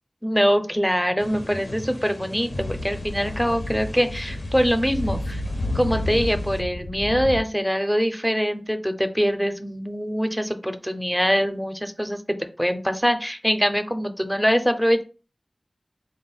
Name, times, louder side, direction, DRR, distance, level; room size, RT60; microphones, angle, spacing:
voice 1, 0.2-5.4 5.7-15.0, equal, 5° left, 8 dB, 0.5 m, -23 dB
sound 1, 1.2-6.6, left 1 dB, 60° left, 0.6 m, -39 dB
Speech / Wind, 2.5-7.4, left 1 dB, 80° left, 0.9 m, -30 dB
4.1 x 2.1 x 3.9 m, 0.34 s
wide cardioid pair, 70°, 0 cm